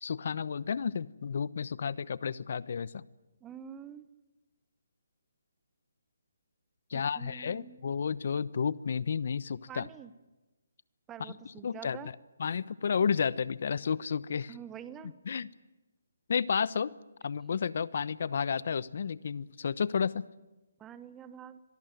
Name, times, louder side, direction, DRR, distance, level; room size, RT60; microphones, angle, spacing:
voice 1, 0.0-3.0 6.9-9.9 11.2-11.3 11.6-12.0 12.4-14.5 15.3-15.5 16.3-16.9 17.2-20.3, left 6 dB, 55° left, 20 dB, 0.9 m, -31 dB
voice 2, 3.4-4.1 6.9-7.8 9.7-10.1 11.1-12.1 14.5-15.1 20.8-21.6, right 9 dB, 15° right, 13 dB, 1.0 m, -46 dB
25.5 x 20.0 x 9.3 m, 1.1 s
hypercardioid pair, 155°, 0 cm